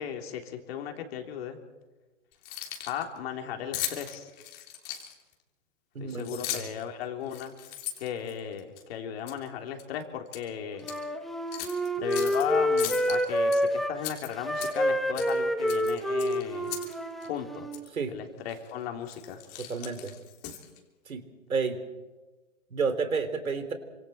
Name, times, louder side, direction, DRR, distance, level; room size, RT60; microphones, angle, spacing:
voice 1, 0.0-1.6 2.9-4.3 6.0-7.5 8.0-10.9 12.0-16.7 17.2-17.7 18.1-19.4, left 9 dB, 45° left, 4 dB, 3.6 m, -36 dB
Keys jangling, 2.3-3.0 3.7-5.3 6.1-6.8 7.3-8.8 9.3-9.5 9.8-10.4 10.8-11.0 11.5-12.4 12.8-13.6 14.0-14.9 15.2-15.4 15.7-16.9 17.2-17.3 17.7-17.9 18.5-18.7 19.1-20.8, left 11 dB, 25° left, 3.3 m, -38 dB
voice 2, 6.0-6.3 6.5-6.7 17.9-18.1 19.6-20.1 21.1-21.2 21.5-21.8 22.7-23.7, right 5 dB, 85° right, 9 dB, 3.7 m, -30 dB
Wind instrument woodwind instrument, 10.8-13.9 14.4-17.8, equal, ahead, 1.1 m, -28 dB
28.0 x 26.0 x 4.4 m, 1.2 s
hypercardioid pair, 140°, 41 cm